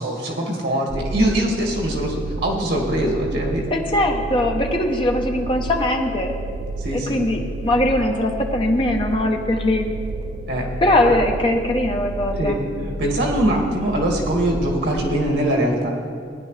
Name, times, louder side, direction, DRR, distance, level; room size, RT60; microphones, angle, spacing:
voice 1, 0.0-3.7 6.8-7.2 10.5-10.7 11.0-11.1 12.4-15.9, right 1 dB, 75° right, -1 dB, 2.1 m, -22 dB
sound 1, 0.9-15.0, right 2 dB, 40° right, 0.4 m, -31 dB
voice 2, 3.7-6.3 6.9-9.9 10.8-12.6, left 1 dB, 30° left, 2 dB, 0.9 m, -21 dB
16.5 x 9.9 x 3.3 m, 2.2 s
head